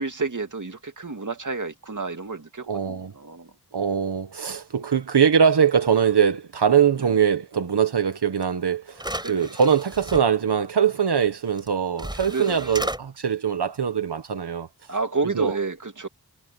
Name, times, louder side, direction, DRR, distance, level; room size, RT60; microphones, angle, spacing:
voice 1, 0.0-3.5 9.2-9.5 12.3-12.7 14.9-16.1, right 4 dB, 50° right, 2.5 m, -30 dB
voice 2, 2.7-3.1 3.7-14.9 15.3-15.6, right 7 dB, 80° right, 1.2 m, -22 dB
sound 1, 8.4-8.5 8.9-10.2 11.6-11.7 12.0-13.0, right 1 dB, 10° right, 4.8 m, -33 dB
wide cardioid pair, 80°, 39 cm